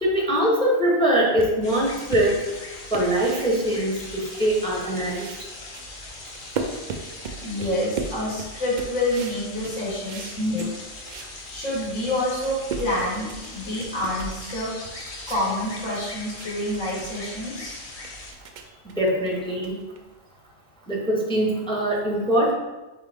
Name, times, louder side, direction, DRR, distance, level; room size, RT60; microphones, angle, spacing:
voice 1, 0.0-2.4 2.9-5.2 19.0-19.8 20.9-22.5, right 1 dB, 5° left, -2 dB, 0.6 m, -22 dB
sound 1, 1.4-4.8 5.0-11.4 11.8-11.9 12.2-20.3, right 4 dB, 90° right, 0.4 m, -37 dB
sound 2, 1.6-18.3, left 2 dB, 50° left, 0.8 m, -40 dB
voice 2, 7.4-10.7 11.5-14.7 15.3-17.8, left 1 dB, 75° left, -7 dB, 2.1 m, -27 dB
4.2 x 3.7 x 3.4 m, 1.1 s
omnidirectional pair, 1.3 m